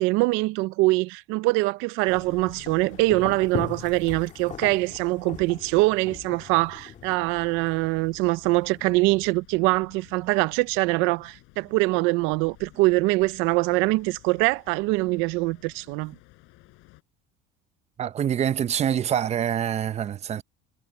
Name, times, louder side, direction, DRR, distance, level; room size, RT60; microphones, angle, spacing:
voice 1, 0.0-16.1, right 23 dB, 80° right, 0.6 m, -23 dB
sound 1, 2.1-17.0, left 22 dB, 75° left, 7.3 m, -53 dB
sound 2, 2.1-9.3, left 8 dB, 35° left, 1.8 m, -40 dB
voice 2, 18.0-20.4, right 9 dB, 35° right, 0.7 m, -25 dB
cardioid pair, 120°, 20 cm